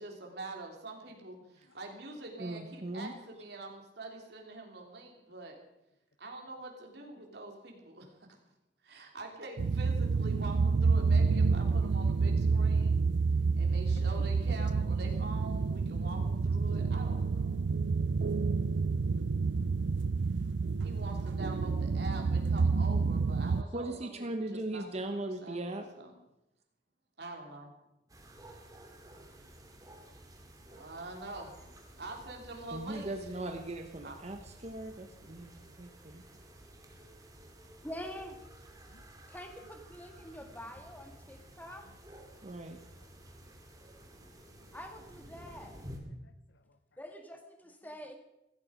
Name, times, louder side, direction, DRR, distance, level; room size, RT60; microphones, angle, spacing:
voice 1, 0.0-5.6 6.2-8.3 8.8-13.0 13.5-17.6 20.8-26.1 27.2-27.7 30.7-31.5 32.0-33.1 34.0-34.1, right 2 dB, 65° right, 1 dB, 3.4 m, -45 dB
voice 2, 2.4-3.1 23.7-25.9 32.7-36.2 42.4-42.8, right 2 dB, 40° right, 6 dB, 1.1 m, -39 dB
sound 1, 9.6-23.6, right 4 dB, 85° right, 0.5 m, -29 dB
voice 3, 17.8-18.3 19.2-19.4 19.6-19.8 24.8-24.9 26.1-26.2 30.0-30.1 30.7-30.9 35.2-36.0 36.3-36.4 38.9-39.0 40.4-40.5 41.9-42.0 44.4-44.8 46.2-46.8, left 3 dB, 80° left, 12 dB, 0.8 m, -61 dB
sound 2, 28.1-46.0, right 1 dB, 20° right, 2.4 m, -53 dB
voice 4, 37.8-38.4 39.3-41.9 44.7-45.8 47.0-48.2, equal, 10° left, 5 dB, 1.9 m, -46 dB
16.0 x 15.5 x 5.2 m, 0.90 s
head